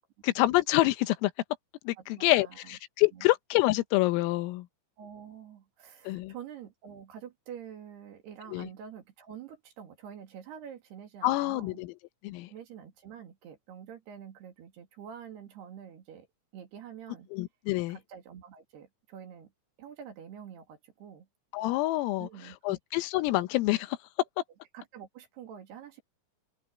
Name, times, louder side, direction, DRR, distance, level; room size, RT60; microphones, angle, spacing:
voice 1, 0.2-1.3 1.9-4.7 6.1-6.3 8.5-8.7 11.2-11.9 12.2-12.5 17.3-18.0 21.5-22.3 22.7-24.0, left 19 dB, 85° left, 3.5 m, -27 dB
voice 2, 2.0-2.8 3.1-3.3 5.0-11.8 12.5-16.3 16.5-17.3 17.9-19.5 19.8-21.3 22.2-23.0 24.7-26.0, right 8 dB, 60° right, 4.0 m, -47 dB
omnidirectional pair, 5.9 m